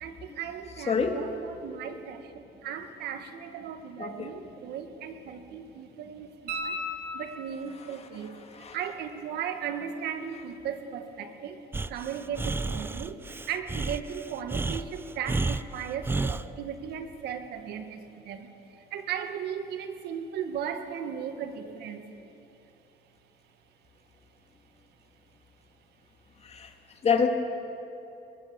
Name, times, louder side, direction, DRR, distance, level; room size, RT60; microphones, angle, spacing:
voice 1, 0.0-2.2 2.6-6.7 7.1-8.3 8.7-11.6 11.9-13.2 13.5-18.0 18.3-18.5 18.9-22.0, right 8 dB, 75° right, 7 dB, 1.9 m, -36 dB
voice 2, 0.9-1.2 4.0-4.3 8.5-8.8 26.4-26.7 27.0-27.3, left 6 dB, 40° left, 5 dB, 2.3 m, -26 dB
sound 1, 6.5-7.8 10.6-10.7, left 1 dB, 60° right, 5.0 m, -35 dB
Breathing, 11.7-16.5, right 3 dB, 15° right, 0.5 m, -31 dB
22.0 x 21.5 x 7.0 m, 2.9 s
cardioid pair, 110°, 17 cm